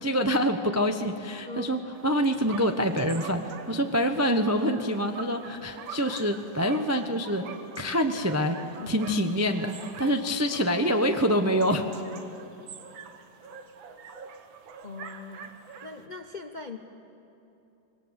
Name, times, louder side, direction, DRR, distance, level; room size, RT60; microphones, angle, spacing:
voice 1, 0.0-7.4 7.8-8.6 8.9-12.0, equal, 20° right, 6 dB, 0.4 m, -26 dB
voice 2, 1.5-1.8 8.1-8.3 8.8-8.9 12.6-12.7 13.2-13.3 14.8-15.5 15.8-16.8, left 3 dB, 45° left, 6 dB, 0.5 m, -41 dB
sound 1, 1.9-16.1, right 6 dB, 80° right, 1.9 m, -45 dB
25.5 x 21.0 x 8.1 m, 2.9 s
omnidirectional pair, 2.1 m